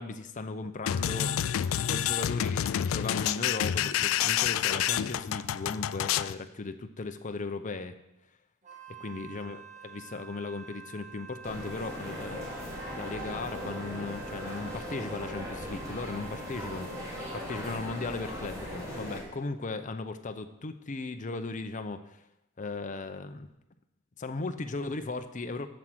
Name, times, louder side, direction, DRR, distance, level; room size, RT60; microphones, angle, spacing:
voice 1, 0.0-8.0 9.0-22.2 22.6-23.5 24.2-25.7, left 3 dB, 40° left, 7 dB, 0.6 m, -37 dB
sound 1, 0.9-6.3, left 10 dB, 70° left, 0.3 m, -28 dB
Wind instrument woodwind instrument, 8.6-17.9, right 7 dB, 35° right, 1.3 m, -49 dB
sound 2, 11.4-19.2, equal, 15° right, 2.7 m, -39 dB
7.6 x 6.2 x 7.7 m, 0.84 s
head